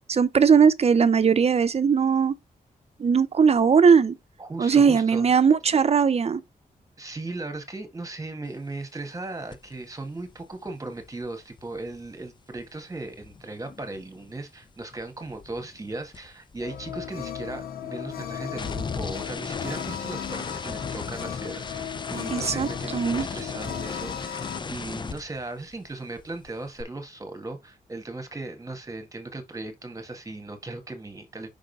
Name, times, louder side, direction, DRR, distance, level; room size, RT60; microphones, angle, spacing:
voice 1, 0.1-2.3 3.0-4.2 4.6-6.4 22.3-23.3, right 6 dB, 45° right, 0.6 m, -19 dB
voice 2, 4.4-5.3 7.0-31.5, right 2 dB, 20° right, 1.7 m, -37 dB
sound 1, 9.5-9.7 10.0-14.4 14.6-25.9 26.2-26.8, left 5 dB, 30° left, 0.5 m, -38 dB
sound 2, 16.6-24.6, left 9 dB, 90° left, 0.7 m, -36 dB
5.5 x 3.7 x 5.4 m
cardioid pair, 90°, 15 cm